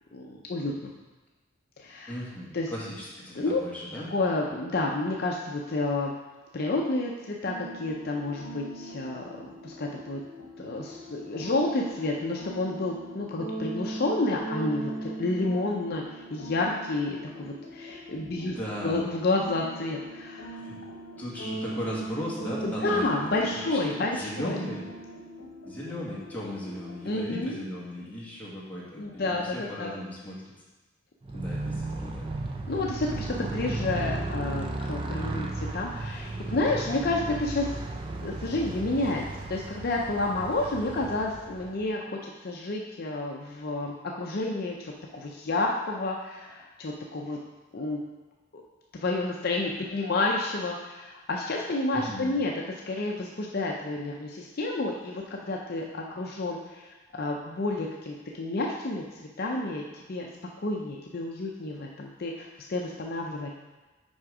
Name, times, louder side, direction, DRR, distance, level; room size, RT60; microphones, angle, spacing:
voice 1, 0.1-0.9 1.8-2.1 2.5-2.7 3.4-3.6 4.1-6.1 6.5-9.2 9.6-10.2 10.6-18.6 18.8-20.6 22.6-24.6 27.0-27.6 29.0-29.9 32.7-37.8 38.2-47.4 47.7-48.0 49.0-52.5 52.9-60.3 60.6-63.5, left 2 dB, 50° left, -1 dB, 0.6 m, -30 dB
voice 2, 2.1-4.1 18.2-19.0 20.5-20.8 21.2-23.1 23.4-24.9 25.6-30.4 31.3-32.3 51.9-52.3, equal, 10° left, -7 dB, 1.6 m, -37 dB
sound 1, 7.4-27.4, right 1 dB, 80° left, 0.9 m, -40 dB
Motorcycle, 31.2-41.9, right 2 dB, 25° right, 0.5 m, -35 dB
6.2 x 5.0 x 4.8 m, 1.2 s
head